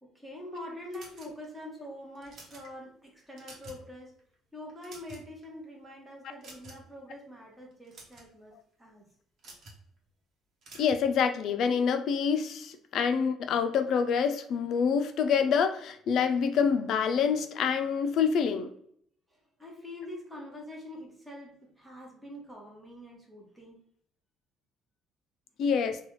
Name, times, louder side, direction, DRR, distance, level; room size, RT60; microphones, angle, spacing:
voice 1, 0.0-4.1 4.5-9.1 19.3-23.8, left 1 dB, 5° right, -2 dB, 1.0 m, -45 dB
sound 1, 0.9-1.6 2.1-2.7 3.2-3.9 4.2-4.3 4.7-5.4 6.4-6.9 7.7-8.3 9.4-9.8 10.6-11.0, right 2 dB, 55° right, 1.0 m, -49 dB
voice 2, 10.8-18.7 25.6-26.0, left 6 dB, 60° left, 8 dB, 0.4 m, -26 dB
3.1 x 2.3 x 3.0 m, 0.67 s
cardioid pair, 125°, 0 cm